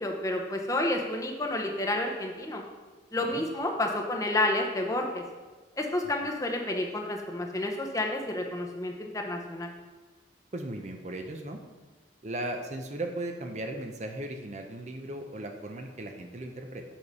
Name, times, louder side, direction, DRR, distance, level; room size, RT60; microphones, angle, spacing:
voice 1, 0.0-2.6 3.1-5.2 5.8-9.7, left 1 dB, 15° left, 2 dB, 0.7 m, -30 dB
voice 2, 10.5-11.6 12.2-16.8, right 1 dB, 40° right, 4 dB, 0.6 m, -37 dB
7.3 x 4.8 x 5.4 m, 1.3 s
head